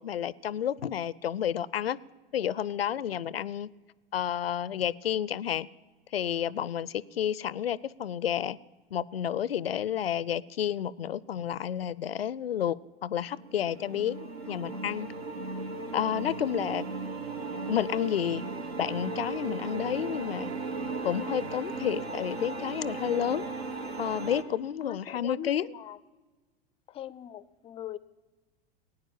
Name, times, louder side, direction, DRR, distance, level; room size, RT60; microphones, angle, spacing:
voice 1, 0.0-2.0 2.3-3.7 4.1-5.7 6.1-8.6 8.9-12.8 13.0-15.1 15.9-16.8 17.7-18.4 18.8-20.5 21.0-23.4 24.0-25.7, left 10 dB, 80° left, 0.5 m, -30 dB
sound 1, 13.3-24.4, right 3 dB, 80° right, 1.3 m, -36 dB
voice 2, 14.5-14.8 24.5-26.0 26.9-28.0, left 11 dB, 20° left, 0.4 m, -42 dB
17.5 x 9.6 x 7.2 m
figure-of-eight pair, 85°, 30 cm